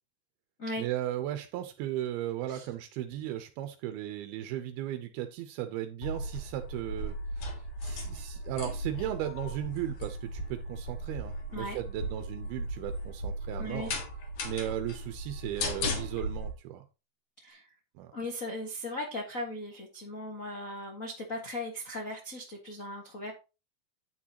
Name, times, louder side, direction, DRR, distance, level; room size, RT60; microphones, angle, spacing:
voice 1, 0.8-13.9 14.4-16.9 18.0-18.1, right 12 dB, 85° right, 7 dB, 2.7 m, -36 dB
sound 1, 6.0-16.5, equal, 55° left, 2.3 m, -37 dB
voice 2, 13.6-13.9 17.4-17.7 18.1-23.3, left 1 dB, 80° left, 1 dB, 0.7 m, -38 dB
9.2 x 8.5 x 2.9 m, 0.29 s
omnidirectional pair, 4.3 m